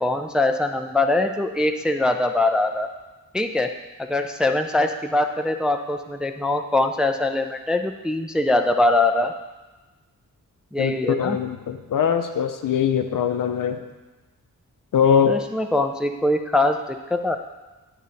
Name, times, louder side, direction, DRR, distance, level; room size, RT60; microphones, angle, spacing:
voice 1, 0.0-2.9 3.3-3.7 4.0-9.3 10.7-11.4 15.3-17.4, left 2 dB, 5° right, 5 dB, 0.3 m, -22 dB
voice 2, 10.8-13.8 14.9-15.3, left 7 dB, 75° left, 7 dB, 0.6 m, -21 dB
10.0 x 3.8 x 4.0 m, 1.2 s
wide cardioid pair, 110°, 33 cm